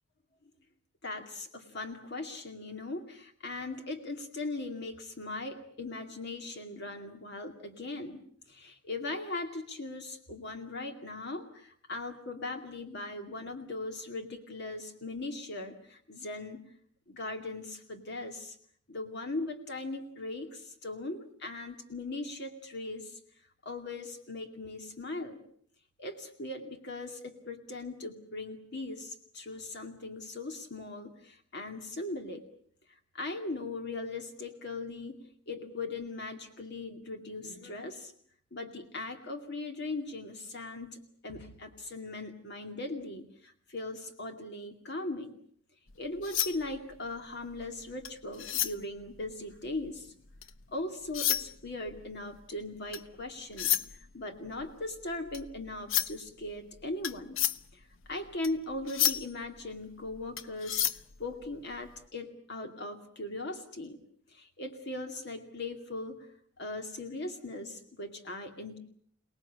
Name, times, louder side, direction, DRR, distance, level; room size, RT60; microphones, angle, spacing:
voice 1, 1.0-16.6 17.1-18.6 18.9-23.2 23.6-25.4 26.0-32.4 32.9-38.1 38.5-45.3 46.0-50.1 50.7-57.4 57.7-60.8 61.2-64.0 64.3-66.3 66.6-68.8, left 2 dB, 60° left, 5 dB, 2.4 m, -39 dB
sound 1, 45.9-50.7 51.0-62.0, left 11 dB, 75° left, 1.1 m, -34 dB
29.0 x 19.0 x 8.6 m, 0.64 s
head